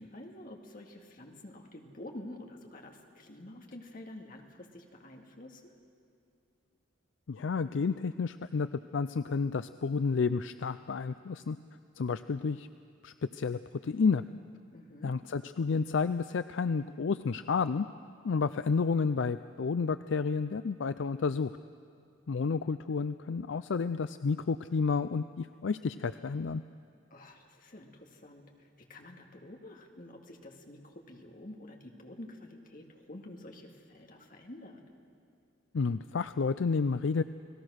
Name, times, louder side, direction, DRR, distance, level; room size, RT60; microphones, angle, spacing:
voice 1, 0.0-5.8 14.7-15.1 27.1-34.8, left 1 dB, 45° left, 2 dB, 2.2 m, -49 dB
voice 2, 7.3-8.7 8.9-11.6 12.0-12.7 13.0-14.2 15.0-17.9 18.2-21.5 22.3-26.6 35.7-37.2, left 5 dB, 70° left, 12 dB, 0.4 m, -30 dB
30.0 x 19.0 x 6.4 m, 2.5 s
head